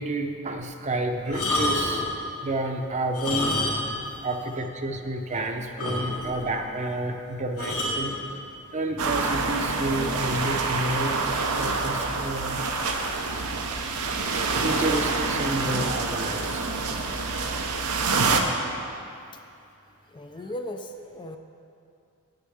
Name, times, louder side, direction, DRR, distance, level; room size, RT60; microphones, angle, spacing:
voice 1, 0.0-2.1 2.4-3.6 4.2-8.2 8.7-11.2 11.5-12.6 14.6-16.7, right 1 dB, 35° right, 5 dB, 0.7 m, -30 dB
sound 1, 1.3-2.1 3.0-4.0 4.3-4.4 5.0-5.1 5.3-5.4 5.8-6.4 7.6-8.0 8.9-9.1, left 1 dB, 75° left, 2.0 m, -28 dB
sound 2, 9.0-18.4, right 3 dB, 90° right, 0.9 m, -27 dB
voice 2, 20.1-21.4, left 1 dB, 20° left, 5 dB, 0.4 m, -37 dB
8.6 x 6.7 x 7.8 m, 2.5 s
head